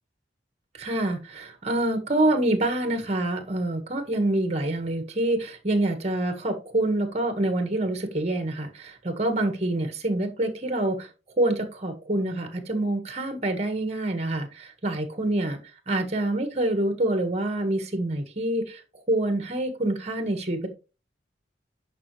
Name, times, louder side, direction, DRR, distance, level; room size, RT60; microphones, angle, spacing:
voice 1, 0.8-11.1 11.4-15.6 15.9-18.8 19.1-20.7, right 1 dB, 40° right, 6 dB, 1.7 m, -26 dB
9.7 x 5.7 x 3.3 m, 0.31 s
head